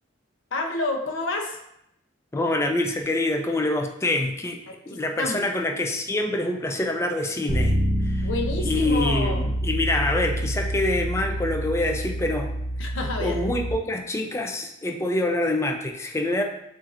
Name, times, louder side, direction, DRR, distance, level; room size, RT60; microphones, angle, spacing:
voice 1, 0.5-1.6 4.7-5.5 8.2-9.4 12.8-13.4, left 2 dB, 80° left, 3 dB, 0.7 m, -29 dB
voice 2, 2.3-4.6 4.9-7.8 8.0-8.3 8.7-12.5 12.8-12.9 13.2-16.4, left 1 dB, 15° left, 3 dB, 0.4 m, -26 dB
Bass guitar, 7.5-13.7, equal, 25° right, 0.8 m, -27 dB
7.2 x 2.6 x 2.5 m, 0.79 s
head